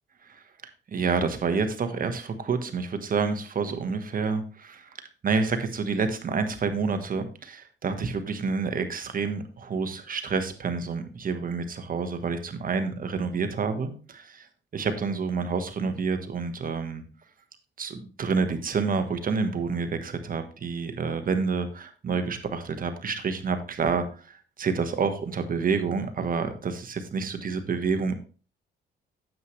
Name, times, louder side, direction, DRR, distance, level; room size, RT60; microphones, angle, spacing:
voice 1, 0.9-14.5 14.7-17.0 17.8-28.1, right 5 dB, 45° right, 8 dB, 1.4 m, -28 dB
9.4 x 7.6 x 3.2 m, 0.37 s
cardioid pair, 90°, 20 cm